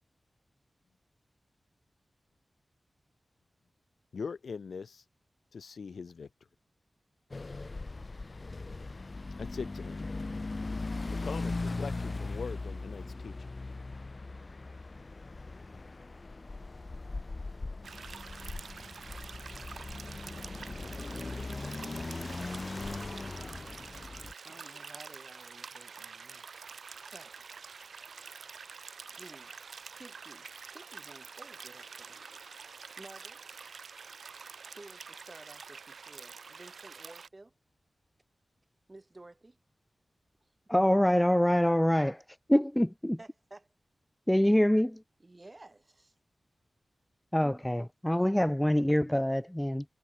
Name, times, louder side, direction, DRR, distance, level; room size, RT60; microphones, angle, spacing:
voice 1, 4.1-5.0 5.5-6.3 9.4-10.0 11.1-13.4, left 5 dB, 85° left, 0.5 m, -41 dB
sound 1, 7.3-24.3, left 3 dB, 40° left, 2.2 m, -39 dB
sound 2, 17.8-37.3, right 5 dB, 85° right, 2.2 m, -47 dB
voice 2, 24.4-26.5 27.1-27.5 29.1-29.5 29.9-32.2 33.0-33.5 34.8-37.5 38.9-39.6 43.2-43.7 45.2-46.1, right 2 dB, 30° right, 4.5 m, -53 dB
voice 3, 40.7-42.2 42.5-43.2 44.3-45.0 47.3-49.8, equal, 5° left, 0.6 m, -25 dB
wide cardioid pair, 75°, 0 cm